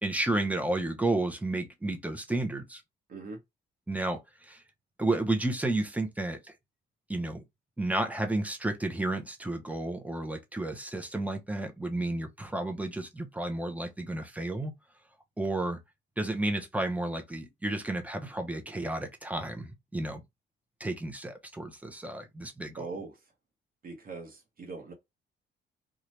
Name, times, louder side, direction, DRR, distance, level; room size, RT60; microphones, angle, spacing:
voice 1, 0.0-2.8 3.9-4.6 5.0-6.5 7.1-7.4 7.8-14.7 15.4-15.8 16.2-20.2 20.8-22.9, right 2 dB, 5° right, 0.8 m, -32 dB
voice 2, 3.1-3.4 22.8-23.2 23.8-24.9, right 4 dB, 45° right, 1.0 m, -41 dB
2.8 x 2.4 x 3.2 m
cardioid pair, 90°, 20 cm